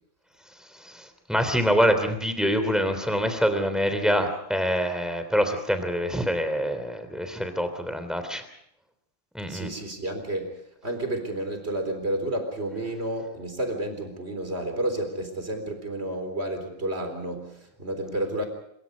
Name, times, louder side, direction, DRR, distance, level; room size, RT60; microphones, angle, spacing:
voice 1, 0.8-8.4 9.3-9.7, equal, ahead, 8 dB, 3.1 m, -25 dB
voice 2, 9.5-18.5, right 1 dB, 30° right, 6 dB, 4.2 m, -31 dB
25.5 x 23.5 x 5.3 m, 0.71 s
omnidirectional pair, 2.1 m